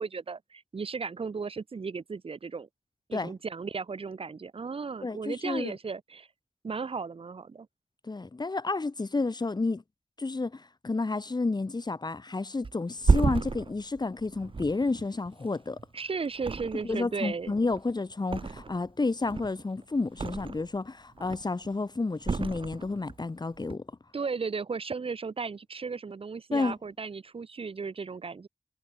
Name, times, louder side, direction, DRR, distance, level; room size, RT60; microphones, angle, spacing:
voice 1, 0.0-2.7 3.1-6.3 6.6-7.7 15.9-17.5 24.1-28.5, right 5 dB, 85° right, 3.3 m, -35 dB
voice 2, 5.0-5.7 8.0-9.8 10.2-15.8 16.8-23.8 26.5-26.7, left 3 dB, 50° left, 3.0 m, -31 dB
Thump thud, 12.6-15.9 16.3-17.1 17.4-18.9 19.2-20.8 21.1-21.7 22.2-23.2 23.5-23.7, right 4 dB, 70° right, 3.2 m, -31 dB
wide cardioid pair, 75°, 9 cm